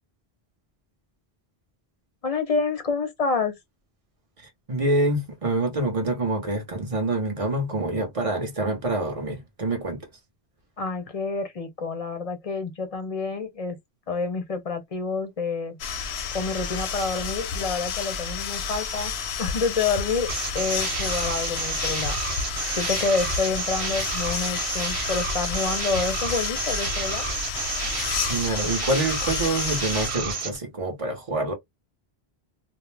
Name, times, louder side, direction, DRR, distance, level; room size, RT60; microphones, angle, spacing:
voice 1, 2.2-3.5 10.8-13.8 14.1-15.8 16.1-19.1 19.4-20.3 20.5-22.2 22.8-27.2, left 4 dB, 40° left, 0.6 m, -28 dB
voice 2, 4.7-10.1 28.3-31.5, right 2 dB, 35° right, 0.8 m, -26 dB
sound 1, 15.8-30.1, left 6 dB, 85° left, 0.8 m, -31 dB
sound 2, 20.3-30.6, right 4 dB, 80° right, 1.1 m, -30 dB
2.4 x 2.0 x 3.1 m
omnidirectional pair, 1.1 m